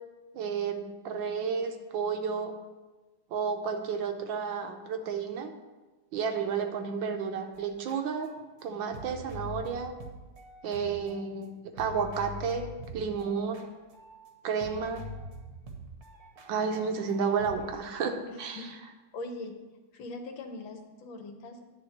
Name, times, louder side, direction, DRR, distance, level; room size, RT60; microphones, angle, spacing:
voice 1, 0.3-2.5 3.3-5.5 6.1-8.3 8.6-9.9 10.6-12.7 12.9-13.6 14.4-15.0 16.4-18.7, right 6 dB, 70° right, 5 dB, 1.3 m, -31 dB
sound 1, 7.5-11.4 11.7-14.3 14.6-17.7, equal, 55° right, 1.2 m, -45 dB
voice 2, 18.3-19.5 19.9-21.7, left 2 dB, 70° left, 5 dB, 1.5 m, -42 dB
9.5 x 3.6 x 6.5 m, 1.2 s
omnidirectional pair, 2.4 m